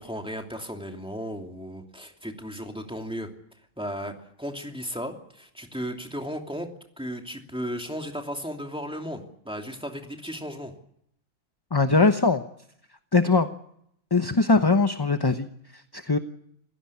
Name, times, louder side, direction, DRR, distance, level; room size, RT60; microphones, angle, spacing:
voice 1, 0.0-3.3 3.8-10.7, equal, 5° right, 3 dB, 2.8 m, -35 dB
voice 2, 11.7-12.4 13.1-13.5 14.1-16.2, left 3 dB, 20° left, 8 dB, 0.9 m, -21 dB
27.5 x 16.5 x 8.6 m, 0.73 s
omnidirectional pair, 1.4 m